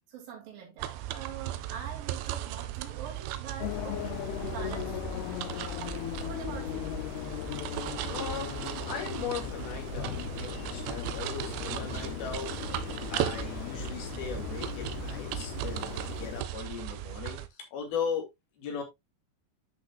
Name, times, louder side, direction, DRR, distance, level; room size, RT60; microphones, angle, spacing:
voice 1, 0.1-5.6 6.2-7.1, right 7 dB, 55° right, 4.0 m, -44 dB
sound 1, 0.8-17.5, right 13 dB, 85° right, 2.9 m, -37 dB
sound 2, 3.6-16.4, left 14 dB, 80° left, 2.4 m, -38 dB
voice 2, 8.1-18.3 18.6-18.8, left 7 dB, 65° left, 4.0 m, -38 dB
10.5 x 6.3 x 2.4 m
omnidirectional pair, 5.0 m